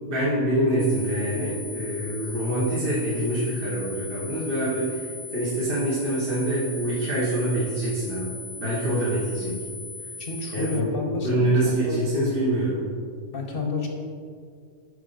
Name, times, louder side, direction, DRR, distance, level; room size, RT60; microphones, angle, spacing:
voice 1, 0.0-8.3 8.6-9.6 10.5-10.8 11.2-12.8, right 1 dB, 45° right, -7 dB, 1.5 m, -25 dB
sound 1, 0.8-10.8, left 3 dB, 20° left, 0.8 m, -39 dB
voice 2, 10.2-12.0 13.3-13.9, left 3 dB, 45° left, 2 dB, 1.1 m, -30 dB
9.5 x 5.5 x 4.0 m, 2.2 s
omnidirectional pair, 1.4 m